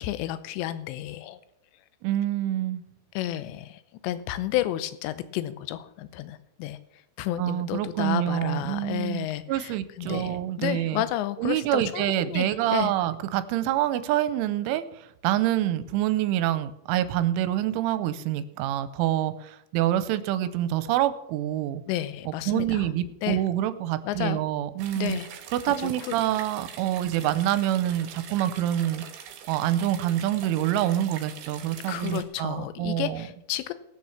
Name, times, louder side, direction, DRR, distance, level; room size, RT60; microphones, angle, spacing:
voice 1, 0.0-1.4 3.1-6.8 7.2-12.9 21.9-22.9 23.2-23.4 24.1-24.4 25.0-25.3 25.7-26.1 31.9-33.7, left 14 dB, 80° left, 13 dB, 2.8 m, -31 dB
voice 2, 2.0-2.8 7.4-11.0 11.4-21.8 22.3-25.2 25.5-29.0 29.5-33.2, right 12 dB, 85° right, 12 dB, 3.1 m, -26 dB
sound 1, 24.8-32.2, right 8 dB, 65° right, 2.8 m, -43 dB
19.0 x 6.4 x 7.1 m, 0.80 s
omnidirectional pair, 5.6 m